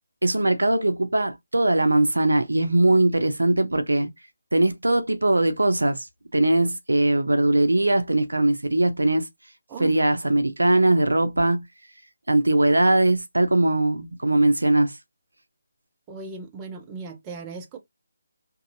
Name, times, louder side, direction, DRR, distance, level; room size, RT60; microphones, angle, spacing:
voice 1, 0.2-4.1 4.5-6.1 6.3-9.3 9.8-11.6 12.3-15.0, right 2 dB, 75° right, 0.5 m, -20 dB
voice 2, 16.1-17.8, right 4 dB, 15° right, 0.6 m, -37 dB
2.6 x 2.6 x 2.5 m
figure-of-eight pair, 150°, 0 cm